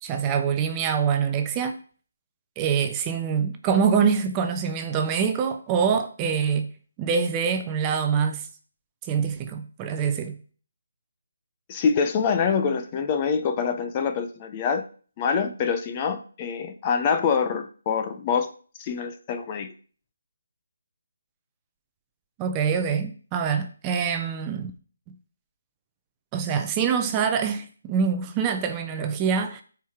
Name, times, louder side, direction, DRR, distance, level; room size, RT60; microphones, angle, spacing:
voice 1, 0.0-1.8 2.6-6.7 7.0-8.5 9.1-10.3 22.4-24.7 26.3-29.6, right 6 dB, 15° right, 0.6 m, -25 dB
voice 2, 11.7-14.8 15.2-18.5 18.8-19.7, left 6 dB, 25° left, 0.7 m, -25 dB
13.0 x 4.6 x 3.6 m
hypercardioid pair, 165°, 0 cm